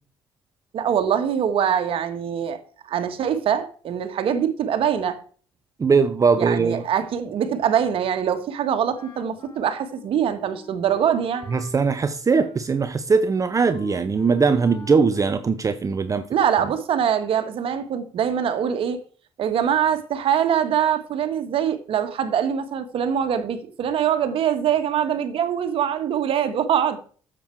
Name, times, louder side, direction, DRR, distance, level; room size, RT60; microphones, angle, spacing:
voice 1, 0.7-5.2 6.4-11.5 16.3-19.0 19.4-27.0, right 8 dB, 65° right, 1.6 m, -23 dB
voice 2, 5.8-6.8 11.5-16.3, right 5 dB, 35° right, 0.7 m, -20 dB
Wind instrument woodwind instrument, 8.9-16.1, left 3 dB, 50° left, 5.7 m, -46 dB
9.3 x 7.6 x 4.6 m
supercardioid pair, 65°, 10 cm